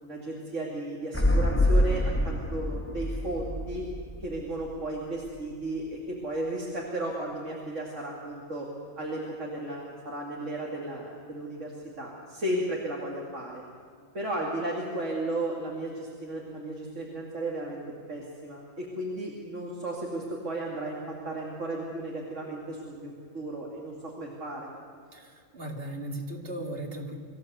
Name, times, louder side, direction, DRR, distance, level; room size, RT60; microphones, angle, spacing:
voice 1, 0.0-3.9 4.2-8.7 9.0-13.6 14.1-17.8 18.1-24.7, right 1 dB, 65° right, -3 dB, 2.9 m, -34 dB
sound 1, 1.1-4.9 5.2-5.3, left 1 dB, 10° left, 1.3 m, -26 dB
voice 2, 25.5-27.2, right 1 dB, 45° right, 2 dB, 2.5 m, -36 dB
24.5 x 15.0 x 8.2 m, 2.2 s
omnidirectional pair, 1.4 m